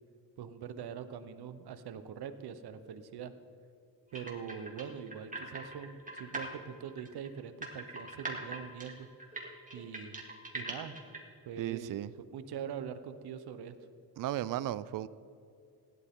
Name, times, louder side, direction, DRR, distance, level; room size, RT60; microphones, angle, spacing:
voice 1, 0.4-3.3 4.1-9.1 9.7-10.2 10.5-11.0 11.5-12.0 12.3-13.8, right 8 dB, 80° right, 11 dB, 1.0 m, -43 dB
sound 1, 4.1-6.5 6.9-11.2, right 2 dB, 20° right, 2.5 m, -41 dB
voice 2, 11.6-12.1 14.2-15.1, right 13 dB, 55° right, 16 dB, 0.5 m, -35 dB
16.0 x 11.5 x 3.7 m, 2.6 s
cardioid pair, 85°, 38 cm